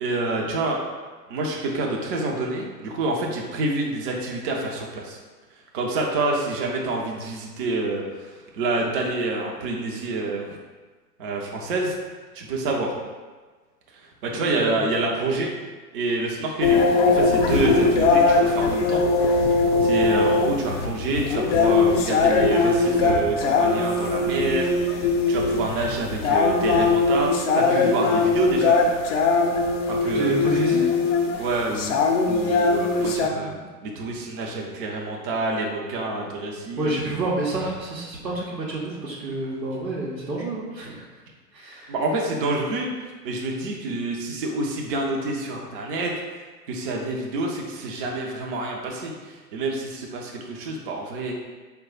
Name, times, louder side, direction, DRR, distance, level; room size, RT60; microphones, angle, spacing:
voice 1, 0.0-0.8 1.3-5.2 5.7-10.6 11.2-11.9 12.3-12.9 14.2-15.5 15.9-19.5 19.8-28.8 29.9-30.3 31.4-32.0 32.3-33.5 33.8-36.9 41.9-46.1 46.7-51.3, right 2 dB, 35° right, -1 dB, 0.5 m, -27 dB
voice 2, 14.3-14.8 30.0-30.9 32.5-32.6 33.2-33.6 36.8-41.0 41.5-41.9, right 2 dB, 85° right, -5 dB, 0.9 m, -29 dB
sound 1, 16.6-33.3, left 3 dB, 50° left, 0.6 m, -21 dB
4.6 x 2.2 x 3.8 m, 1.4 s
figure-of-eight pair, 100°, 49 cm